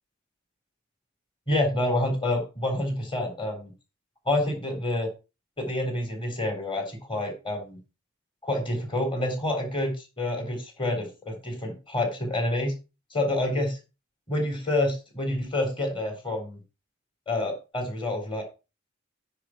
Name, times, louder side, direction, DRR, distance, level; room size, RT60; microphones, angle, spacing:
voice 1, 1.5-3.7 4.3-5.1 5.6-7.8 8.4-12.7 13.1-13.8 14.3-16.6 17.3-18.4, left 1 dB, 25° left, 3 dB, 3.8 m, -28 dB
9.8 x 4.7 x 6.0 m, 0.30 s
head